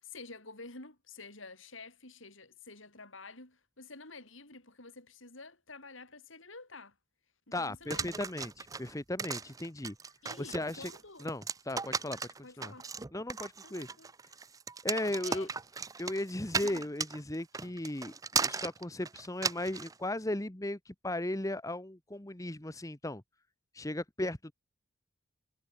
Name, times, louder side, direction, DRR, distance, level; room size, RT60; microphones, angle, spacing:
voice 1, 0.0-6.9 7.5-8.1 10.2-11.3 12.4-12.9 13.6-14.1 15.2-15.5 16.6-16.8, left 3 dB, 70° left, 6.3 m, -49 dB
voice 2, 7.5-9.9 10.4-10.9 11.2-12.2 12.6-12.7 13.1-13.9 14.8-15.5 16.0-23.2 23.7-24.5, left 1 dB, 15° left, 1.1 m, -36 dB
sound 1, 7.9-19.9, right 5 dB, 15° right, 0.5 m, -36 dB
head